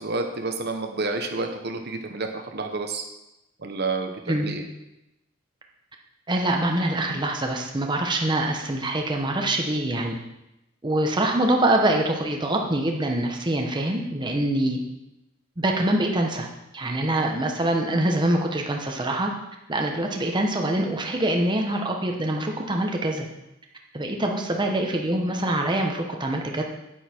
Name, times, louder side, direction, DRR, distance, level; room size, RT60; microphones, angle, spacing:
voice 1, 0.0-3.0 3.6-4.6, right 3 dB, 55° right, 4 dB, 1.0 m, -29 dB
voice 2, 6.3-10.2 10.8-14.8 15.6-16.5 16.7-19.3 19.7-23.3 23.9-26.6, right 1 dB, 25° right, 1 dB, 1.0 m, -24 dB
9.4 x 9.1 x 4.5 m, 0.91 s
head